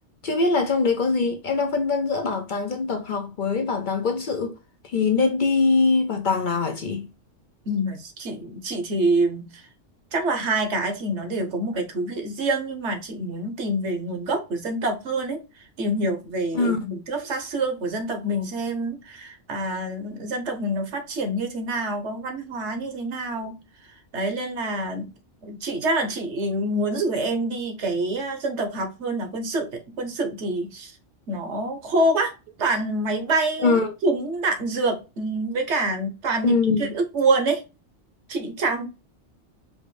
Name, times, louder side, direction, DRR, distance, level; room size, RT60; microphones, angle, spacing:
voice 1, 0.2-4.6 4.8-7.1 16.5-16.8 33.6-33.9 36.4-36.9, left 4 dB, 55° left, 0.6 m, -23 dB
voice 2, 7.6-9.7 10.1-23.5 24.1-25.1 25.4-30.9 31.3-32.3 32.6-37.6 38.3-38.9, right 2 dB, 75° right, 1.3 m, -26 dB
5.1 x 2.5 x 3.1 m
omnidirectional pair, 1.2 m